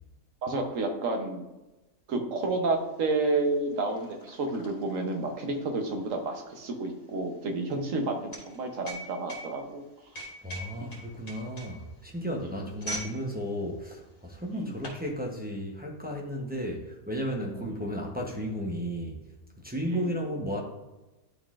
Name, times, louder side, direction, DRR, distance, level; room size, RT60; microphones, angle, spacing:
voice 1, 0.4-1.4 2.1-9.8 14.5-14.8 19.9-20.1, right 2 dB, 65° right, 3 dB, 1.2 m, -30 dB
sound 1, 2.9-3.0 3.2-13.2 13.5-13.7 14.4-15.0, right 1 dB, 65° left, 2.4 m, -42 dB
voice 2, 10.4-19.2 19.6-20.6, equal, 10° right, -2 dB, 0.6 m, -34 dB
11.0 x 3.8 x 2.5 m, 1.1 s
omnidirectional pair, 1.5 m